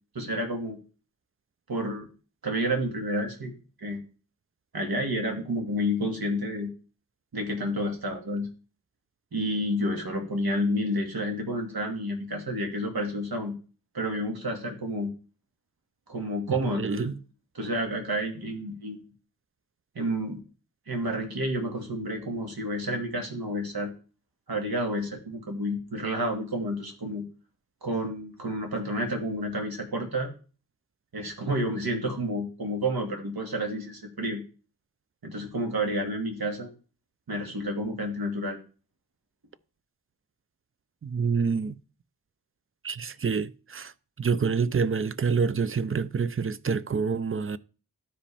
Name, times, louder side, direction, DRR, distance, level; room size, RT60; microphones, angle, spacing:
voice 1, 0.1-0.8 1.7-2.1 2.4-3.5 3.8-4.0 4.7-6.7 7.3-8.5 9.3-13.5 13.9-15.1 16.1-17.1 17.5-19.1 20.0-20.4 20.9-23.9 24.5-27.2 27.8-30.3 31.1-34.4 35.2-36.7 37.3-38.6, equal, 70° right, 2.1 m, -30 dB
voice 2, 16.8-17.1 41.0-41.7 42.8-43.9 44.2-47.6, right 5 dB, 35° right, 0.5 m, -27 dB
12.5 x 5.0 x 3.4 m
wide cardioid pair, 55°, 37 cm